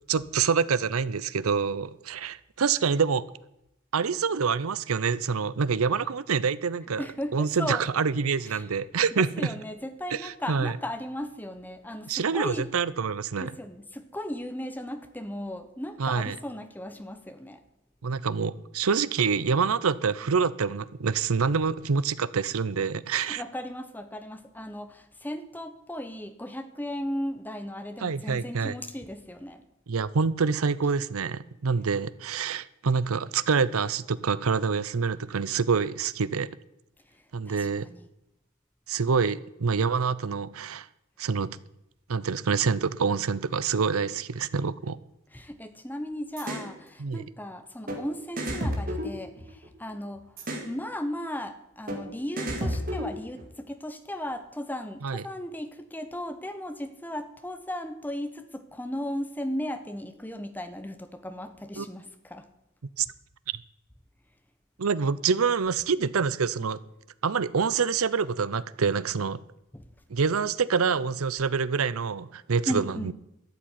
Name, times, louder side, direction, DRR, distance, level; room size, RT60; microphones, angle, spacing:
voice 1, 0.1-3.2 3.9-7.0 7.3-9.5 10.1-10.7 12.1-13.5 16.0-16.4 18.0-23.4 28.0-28.7 29.9-36.5 37.3-37.9 38.9-40.9 41.2-41.6 42.1-45.0 47.0-47.2 55.0-55.2 61.8-61.9 63.0-63.1 64.8-66.8 67.2-69.4 70.1-73.1, right 5 dB, 85° right, 0.6 m, -26 dB
voice 2, 7.0-7.8 8.4-8.7 9.1-12.7 13.4-17.6 23.1-29.6 37.5-38.1 45.3-50.4 50.6-62.5 69.7-69.9 72.7-73.1, left 1 dB, 10° left, 0.9 m, -36 dB
sound 1, 46.4-46.7 47.9-48.0 48.4-49.8 50.4-50.7 51.9-52.0 52.4-53.5, equal, 40° right, 2.4 m, -31 dB
13.0 x 7.5 x 9.5 m
head